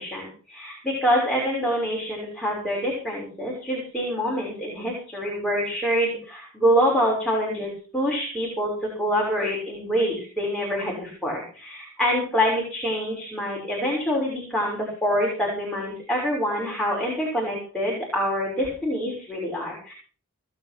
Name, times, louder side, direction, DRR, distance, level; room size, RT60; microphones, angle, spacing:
voice 1, 0.0-8.7 9.0-19.9, equal, 5° left, -4 dB, 6.2 m, -26 dB
19.5 x 8.9 x 6.1 m, 0.40 s
head